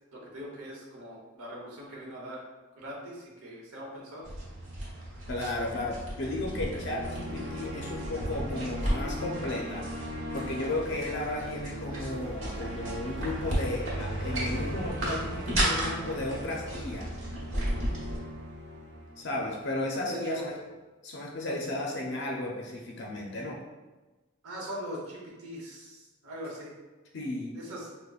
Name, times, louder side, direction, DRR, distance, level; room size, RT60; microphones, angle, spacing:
voice 1, 0.1-2.4 2.8-4.3 20.1-20.5 24.4-26.7 27.5-27.9, equal, 90° right, -3 dB, 0.9 m, -41 dB
sound 1, 4.2-18.2, right 1 dB, 65° right, 1.2 m, -34 dB
voice 2, 5.3-9.8 10.3-17.1 19.2-20.5 21.0-23.6 27.1-27.6, left 2 dB, 50° left, -1 dB, 0.4 m, -34 dB
sound 2, 5.9-20.0, equal, 50° right, 0.5 m, -40 dB
4.9 x 2.1 x 2.3 m, 1.2 s
head